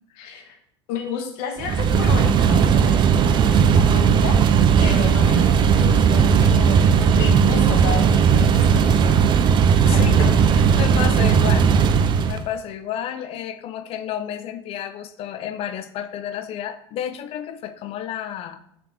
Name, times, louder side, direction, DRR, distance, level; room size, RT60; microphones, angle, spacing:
voice 1, 0.2-0.6 0.9-4.4 4.8-9.2 9.9-10.3, left 7 dB, 65° left, 3 dB, 1.3 m, -32 dB
sound 1, 1.6-12.4, right 7 dB, 35° right, 0.4 m, -17 dB
voice 2, 9.9-18.6, left 10 dB, 45° left, 11 dB, 0.6 m, -31 dB
5.7 x 3.5 x 5.3 m, 0.72 s
hypercardioid pair, 80°, 14 cm